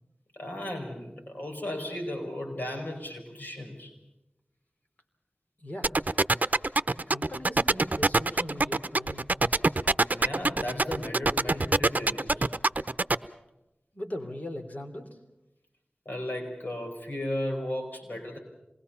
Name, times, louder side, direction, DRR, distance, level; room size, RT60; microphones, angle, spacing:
voice 1, 0.3-3.9 10.1-12.5 16.1-18.4, left 1 dB, 65° left, 3 dB, 5.3 m, -35 dB
voice 2, 5.6-5.9 7.1-9.6 13.9-15.2, left 1 dB, 50° left, 4 dB, 3.6 m, -40 dB
sound 1, 5.8-13.1, right 2 dB, 55° right, 0.7 m, -23 dB
27.0 x 21.0 x 5.7 m, 0.92 s
wide cardioid pair, 50°, 3 cm